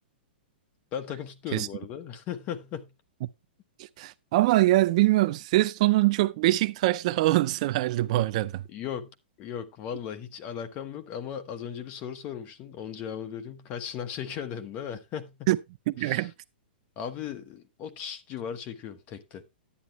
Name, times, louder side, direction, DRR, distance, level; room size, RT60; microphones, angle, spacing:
voice 1, 0.9-2.9 8.7-9.1 9.4-15.5 16.0-16.3 17.0-19.4, left 8 dB, 25° left, 1.2 m, -37 dB
voice 2, 3.8-8.6 15.5-15.6 15.9-16.3, right 17 dB, 40° right, 0.4 m, -23 dB
11.0 x 9.2 x 3.0 m
hypercardioid pair, 160°, 6 cm